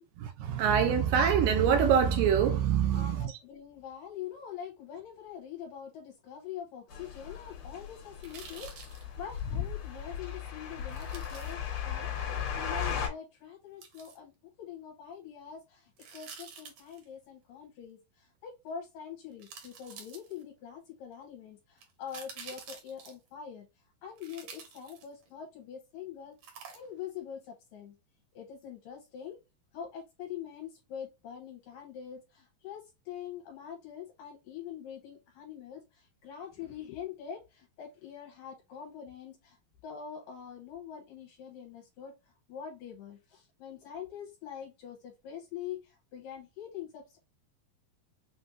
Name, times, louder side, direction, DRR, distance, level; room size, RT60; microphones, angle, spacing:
voice 1, 0.2-3.3, right 7 dB, 80° right, 2.1 m, -25 dB
voice 2, 2.9-14.3 14.6-23.7 24.0-26.4 26.7-27.9 28.3-29.4 29.7-39.6 39.8-42.1 42.5-47.2, left 8 dB, 75° left, 2.4 m, -44 dB
sound 1, 6.9-13.1, left 8 dB, 55° left, 2.1 m, -36 dB
sound 2, 8.2-9.0 10.9-11.5 13.8-14.2 16.0-17.0 18.7-18.8 19.4-20.6 21.8-23.3 24.2-25.3 26.4-27.1 27.4-27.5, right 6 dB, 65° right, 2.3 m, -49 dB
6.2 x 2.6 x 2.6 m
omnidirectional pair, 4.3 m